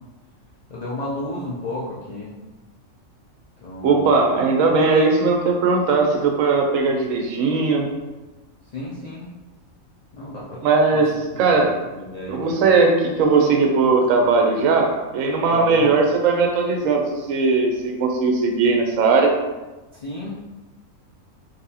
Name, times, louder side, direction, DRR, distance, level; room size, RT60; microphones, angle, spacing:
voice 1, 0.7-2.3 3.6-4.2 8.7-9.3 10.1-10.6 10.9-11.0 11.3-11.6 11.9-12.6 15.5-16.0 20.0-20.3, left 1 dB, 75° left, -6 dB, 0.3 m, -32 dB
voice 2, 3.8-7.9 10.6-11.7 12.3-19.3, right 4 dB, 75° right, 2 dB, 1.0 m, -18 dB
4.0 x 2.7 x 2.7 m, 1.1 s
omnidirectional pair, 1.4 m